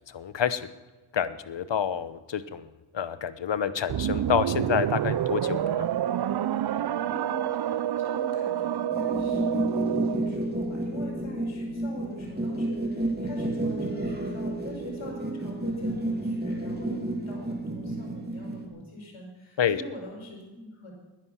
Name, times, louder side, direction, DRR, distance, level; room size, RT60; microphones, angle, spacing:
voice 1, 0.1-0.7 1.1-2.7 2.9-5.9 19.6-19.8, left 8 dB, 65° left, 13 dB, 1.0 m, -28 dB
sound 1, 3.9-10.4, right 11 dB, 55° right, 0.5 m, -28 dB
voice 2, 7.1-20.9, equal, 85° left, 0 dB, 5.9 m, -42 dB
sound 2, 8.9-18.7, right 1 dB, 20° right, 2.6 m, -31 dB
21.5 x 10.5 x 5.9 m, 1.2 s
wide cardioid pair, 95°, 47 cm